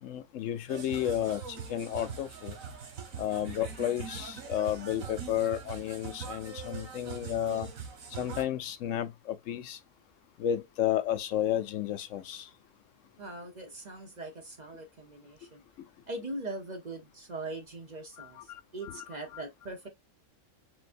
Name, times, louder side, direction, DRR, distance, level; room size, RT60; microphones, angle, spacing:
voice 1, 0.0-2.6 3.2-7.7 8.1-9.8 10.4-12.5 18.2-19.0 19.3-19.4, left 11 dB, 75° left, 0.9 m, -32 dB
sound 1, 0.7-8.4, right 6 dB, 90° right, 1.6 m, -42 dB
voice 2, 13.2-15.6 16.1-19.9, right 2 dB, 40° right, 0.9 m, -41 dB
6.1 x 2.6 x 2.5 m
omnidirectional pair, 1.4 m